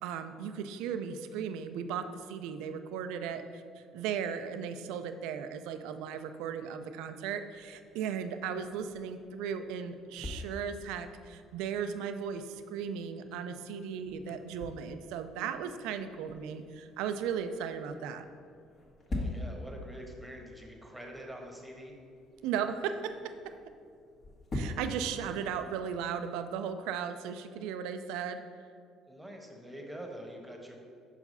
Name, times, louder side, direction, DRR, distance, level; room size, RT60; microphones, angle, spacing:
voice 1, 0.0-18.3 22.4-23.5 24.5-28.4, right 7 dB, 80° right, 9 dB, 0.4 m, -36 dB
sound 1, 7.5-26.4, left 1 dB, 45° left, 1.5 m, -45 dB
voice 2, 19.1-22.0 29.1-30.7, equal, 5° right, 1 dB, 1.2 m, -45 dB
5.7 x 4.8 x 5.4 m, 2.3 s
supercardioid pair, 85°, 0 cm